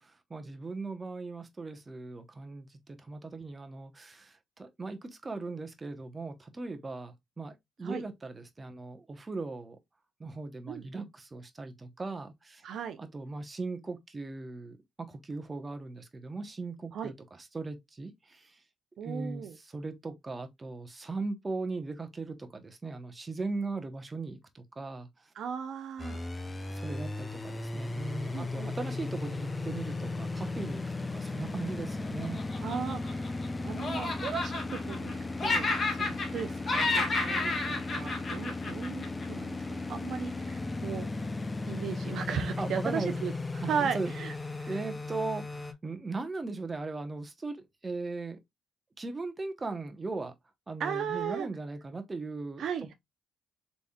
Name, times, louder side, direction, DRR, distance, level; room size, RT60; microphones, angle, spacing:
voice 1, 0.0-9.8 10.2-12.6 13.0-14.8 15.1-17.1 17.5-18.5 19.0-25.1 26.7-32.4 42.6-43.2 43.6-44.1 44.4-48.4 49.0-50.3 50.7-52.6, right 3 dB, 25° right, 0.9 m, -38 dB
voice 2, 10.7-11.1 12.6-13.0 16.9-17.1 19.0-19.6 25.3-26.2 28.3-28.7 32.6-35.1 35.4-41.1 41.7-44.3 44.6-44.8 50.8-51.5 52.6-52.9, right 7 dB, 70° right, 0.6 m, -36 dB
sound 1, 26.0-45.7, left 3 dB, 20° left, 0.6 m, -36 dB
Laughter, 32.2-33.5 33.8-35.1 35.4-36.4 36.7-39.2, left 3 dB, 40° left, 1.5 m, -31 dB
4.1 x 3.4 x 2.3 m
cardioid pair, 90°, 0 cm